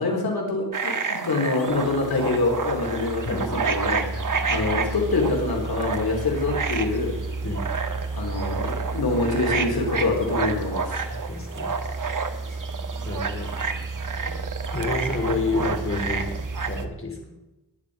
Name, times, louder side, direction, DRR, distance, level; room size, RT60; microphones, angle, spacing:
voice 1, 0.0-4.1 4.5-7.1 8.1-11.0 15.5-15.6, left 3 dB, 85° left, 0 dB, 4.0 m, -25 dB
sound 1, 0.7-16.8, right 5 dB, 60° right, 1.5 m, -30 dB
sound 2, 1.6-16.9, right 3 dB, 35° right, 6.7 m, -33 dB
voice 2, 3.3-3.6 4.1-4.4 7.4-7.7 11.3-12.1 12.5-13.6 14.7-16.4 16.7-17.2, left 3 dB, 35° left, 2 dB, 3.6 m, -30 dB
21.5 x 10.5 x 5.1 m, 0.96 s
wide cardioid pair, 85°, 36 cm